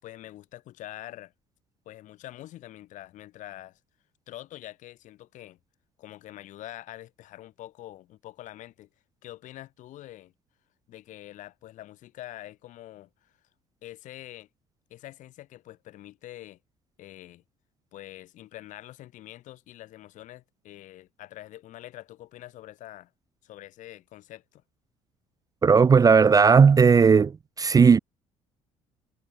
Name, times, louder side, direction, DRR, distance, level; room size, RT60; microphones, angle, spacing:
voice 1, 0.0-1.3 1.9-3.8 4.3-5.6 6.0-8.9 9.2-10.3 10.9-13.3 13.8-14.5 14.9-16.6 17.0-17.4 17.9-23.1 23.4-24.6, left 14 dB, 60° left, 5.6 m, -45 dB
voice 2, 25.6-27.3 27.6-28.0, right 5 dB, 25° right, 0.5 m, -16 dB
hypercardioid pair, 55°, 14 cm